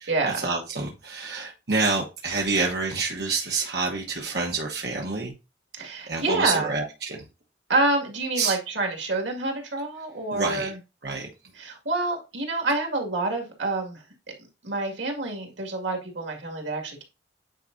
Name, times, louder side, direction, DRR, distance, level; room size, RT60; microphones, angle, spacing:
voice 1, 0.0-5.3 6.1-7.2 8.4-8.6 10.3-10.7 11.0-11.3, right 3 dB, 60° right, 0 dB, 1.1 m, -28 dB
voice 2, 5.8-6.7 7.7-10.8 11.6-14.0 14.6-17.0, right 2 dB, 85° right, 3 dB, 2.0 m, -27 dB
9.0 x 4.6 x 2.6 m, 0.28 s
head